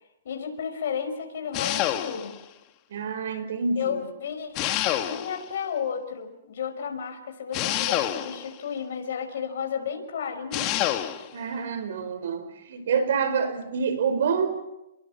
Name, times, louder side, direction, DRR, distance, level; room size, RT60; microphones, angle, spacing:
voice 1, 0.2-2.4 3.8-4.5 5.0-10.7, left 7 dB, 65° left, 5.8 m, -32 dB
sound 1, 1.5-2.4 4.6-5.5 7.5-8.6 10.5-11.3, left 13 dB, 30° left, 1.8 m, -27 dB
voice 2, 2.9-3.9 11.3-14.5, right 6 dB, 65° right, 5.4 m, -27 dB
30.0 x 22.0 x 5.9 m
hypercardioid pair, 155°, 0 cm